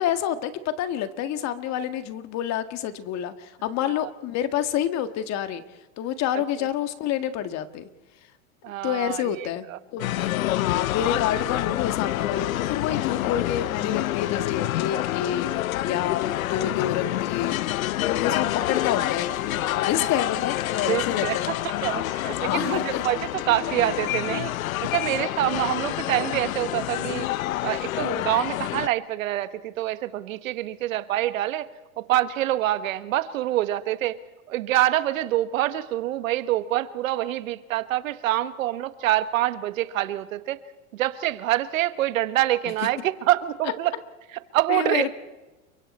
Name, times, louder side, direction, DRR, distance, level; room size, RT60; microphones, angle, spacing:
voice 1, 0.0-5.6 6.0-7.9 8.8-9.6 9.9-10.1 10.4-15.5 15.8-17.6 18.1-21.6 22.3-23.0 43.6-43.7 44.7-45.1, left 10 dB, 40° left, 9 dB, 1.8 m, -28 dB
voice 2, 8.6-9.8 20.8-21.4 21.6-23.2 23.5-24.5 24.9-27.3 27.6-31.7 32.0-34.2 34.5-40.6 40.9-43.9 44.5-45.1, right 14 dB, 75° right, 12 dB, 1.4 m, -26 dB
sound 1, 10.0-28.9, left 14 dB, 85° left, 0.7 m, -27 dB
29.0 x 24.0 x 4.3 m, 1.2 s
hypercardioid pair, 115°, 40 cm